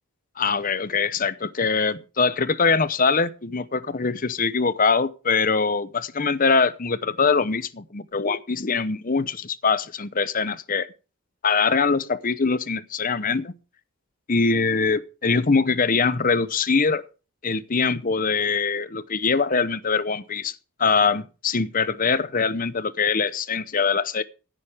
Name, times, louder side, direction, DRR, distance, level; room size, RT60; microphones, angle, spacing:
voice 1, 0.4-10.9 11.4-13.5 14.3-17.0 17.4-24.2, left 4 dB, 40° left, 0.8 m, -23 dB
16.5 x 10.5 x 3.5 m
head